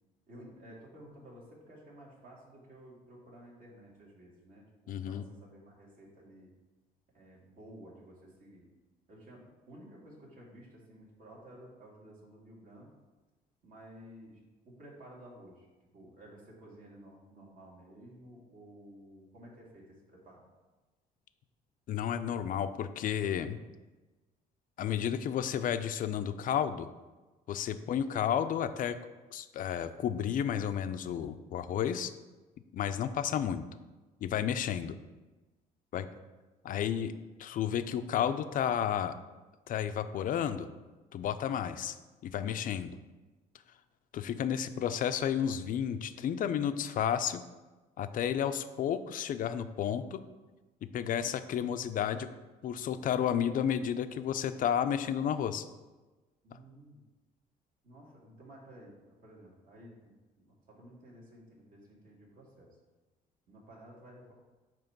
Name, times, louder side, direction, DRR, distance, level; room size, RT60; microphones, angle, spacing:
voice 1, 0.3-6.5 7.1-8.7 9.1-12.9 13.6-15.7 15.9-20.5 27.7-28.0 56.4-57.0 57.8-62.8 63.5-64.3, right 1 dB, 50° right, -4 dB, 2.6 m, -53 dB
voice 2, 4.9-5.2 21.9-23.6 24.8-26.9 27.5-29.0 29.3-32.1 32.7-33.6 34.2-35.0 35.9-36.1 36.6-37.1 37.4-39.2 39.7-40.7 41.1-41.9 42.2-42.9 44.1-47.4 48.0-50.2 50.9-52.3 52.6-55.6, left 9 dB, 55° left, 10 dB, 0.5 m, -32 dB
8.9 x 3.1 x 5.9 m, 1.2 s
cardioid pair, 110°, 17 cm